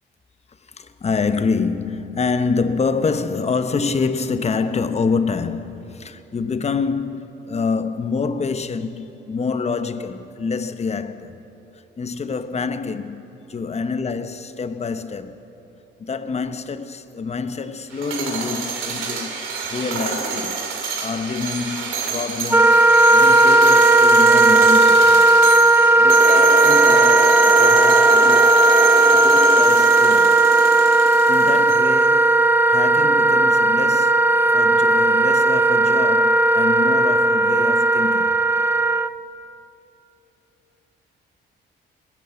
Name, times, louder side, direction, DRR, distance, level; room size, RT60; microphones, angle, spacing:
voice 1, 0.7-11.4 12.0-13.2 13.5-15.4 16.0-20.6 21.0-22.8 23.1-25.3 26.0-28.5 29.1-30.4 31.3-32.4 32.7-34.2 34.5-38.4, left 4 dB, 35° left, 0.8 m, -26 dB
sound 1, 17.9-32.0, right 4 dB, 80° right, 2.4 m, -27 dB
Wind instrument woodwind instrument, 22.5-39.1, right 2 dB, 10° right, 0.4 m, -15 dB
21.0 x 9.2 x 7.5 m
cardioid pair, 90°, 20 cm